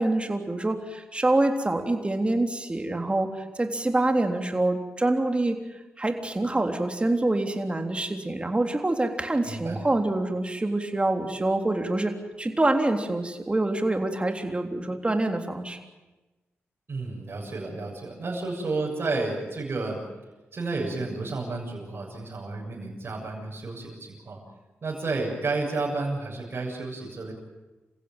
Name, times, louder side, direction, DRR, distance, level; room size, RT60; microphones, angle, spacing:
voice 1, 0.0-5.6 6.0-12.1 12.4-15.8, right 2 dB, 25° right, 5 dB, 3.5 m, -26 dB
voice 2, 9.4-9.9 16.9-20.0 20.5-24.4 24.8-27.3, right 3 dB, 50° right, -4 dB, 7.2 m, -31 dB
28.5 x 16.0 x 9.2 m, 1.1 s
cardioid pair, 55°, 5 cm